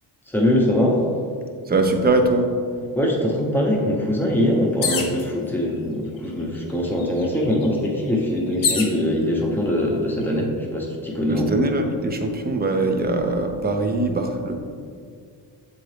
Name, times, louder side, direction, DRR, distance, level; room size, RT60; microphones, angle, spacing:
voice 1, 0.3-1.0 2.9-11.6, left 1 dB, 5° left, -2 dB, 0.7 m, -22 dB
voice 2, 1.7-2.5 11.2-14.5, right 2 dB, 25° right, 5 dB, 0.4 m, -22 dB
sound 1, 4.8-5.2 6.2-6.3 6.6-9.0 9.7-10.2, left 6 dB, 50° left, 0.8 m, -27 dB
7.6 x 3.9 x 3.2 m, 2.2 s
cardioid pair, 140°, 44 cm